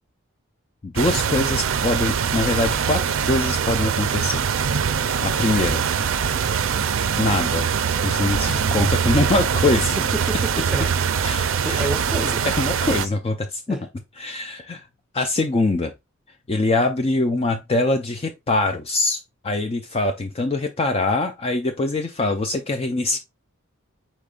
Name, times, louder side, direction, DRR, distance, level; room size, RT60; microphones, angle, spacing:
voice 1, 0.8-4.5 5.2-5.9 7.2-7.7 8.0-9.9 11.2-11.9 12.6-13.8 14.2-14.9 15.1-15.9 16.5-23.2, left 2 dB, 25° left, 0.4 m, -23 dB
sound 1, 1.0-13.1, right 7 dB, 60° right, 0.4 m, -23 dB
voice 2, 9.9-11.0 11.4-12.4 13.7-13.8 22.8-23.2, equal, 5° right, 0.7 m, -31 dB
5.1 x 4.2 x 2.4 m
head